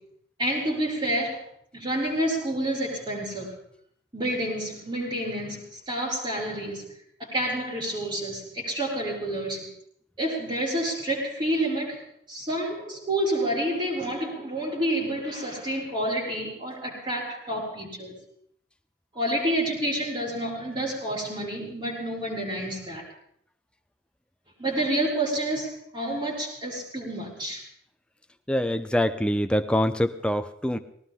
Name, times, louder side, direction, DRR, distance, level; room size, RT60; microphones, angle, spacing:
voice 1, 0.4-1.4 1.7-3.5 4.1-6.8 7.2-9.7 10.2-12.0 12.3-18.1 19.1-23.0 24.6-27.6, right 1 dB, 30° right, -5 dB, 6.4 m, -29 dB
voice 2, 28.5-30.8, equal, 5° left, 9 dB, 0.8 m, -24 dB
20.0 x 19.0 x 3.8 m, 0.68 s
head